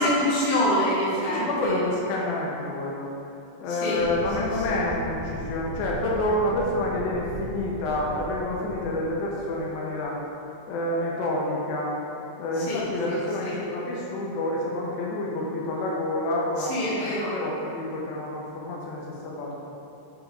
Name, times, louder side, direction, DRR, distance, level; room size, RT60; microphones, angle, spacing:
voice 1, 0.0-1.8 3.8-4.0 4.4-4.5 12.5-13.1 13.4-13.6 16.6-17.3, left 1 dB, 55° left, -9 dB, 2.7 m, -26 dB
voice 2, 1.3-3.1 3.6-10.2 10.7-12.0 12.4-19.6, left 1 dB, 90° left, -3 dB, 3.1 m, -28 dB
sound 1, 3.9-10.3, equal, 70° right, 1.2 m, -37 dB
7.8 x 4.9 x 3.9 m, 2.7 s
omnidirectional pair, 4.8 m